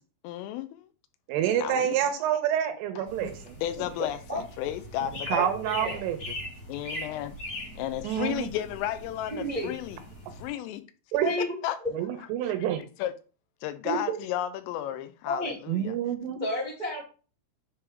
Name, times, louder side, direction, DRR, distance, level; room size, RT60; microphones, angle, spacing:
voice 1, 0.2-0.9 1.6-2.0 3.6-5.5 6.7-7.4 7.8-10.0 10.3-10.8 11.6-11.8 12.4-12.7 13.0-13.1 13.6-15.9, left 12 dB, 85° left, 3.0 m, -33 dB
voice 2, 1.3-3.6 5.0-6.2 8.0-8.5 11.1-11.3 11.9-12.8 13.9-14.2 15.7-16.4, right 10 dB, 80° right, 3.3 m, -28 dB
sound 1, 3.0-10.5, left 1 dB, 40° left, 1.3 m, -41 dB
voice 3, 3.8-4.4 5.3-6.0 9.3-9.7 11.2-11.5 11.8-11.9 15.2-15.6 16.4-17.0, left 1 dB, 50° right, 0.5 m, -31 dB
9.7 x 3.4 x 3.4 m
omnidirectional pair, 5.9 m